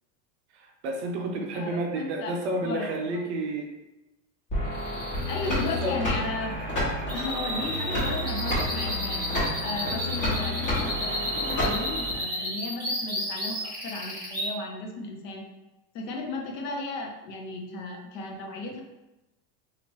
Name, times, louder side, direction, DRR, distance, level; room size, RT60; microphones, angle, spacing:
voice 1, 0.5-3.7 5.4-5.9 10.3-10.5, right 2 dB, 45° right, 1 dB, 0.5 m, -31 dB
voice 2, 1.5-2.9 5.3-6.5 7.1-9.3 9.6-15.5 15.9-18.8, left 3 dB, 80° left, 2 dB, 0.8 m, -35 dB
sound 1, 4.5-12.1, left 1 dB, 35° left, 1.3 m, -30 dB
sound 2, 4.7-14.5, equal, 10° right, 1.1 m, -33 dB
2.9 x 2.5 x 3.0 m, 0.99 s
supercardioid pair, 170°, 48 cm